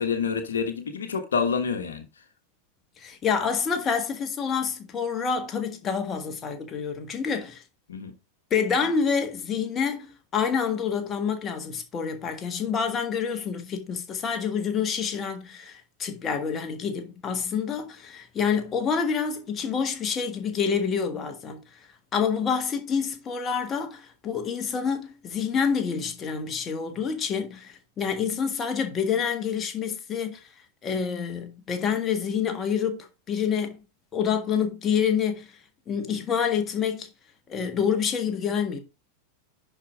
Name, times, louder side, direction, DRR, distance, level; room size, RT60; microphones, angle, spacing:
voice 1, 0.0-2.1 7.9-8.1, left 6 dB, 65° left, 1.3 m, -27 dB
voice 2, 3.0-7.6 8.5-21.6 22.1-30.4 30.8-33.8 34.1-35.5 35.9-37.1 37.5-38.8, left 6 dB, 25° left, 1.7 m, -27 dB
10.5 x 4.7 x 3.7 m
figure-of-eight pair, 90°, 0 cm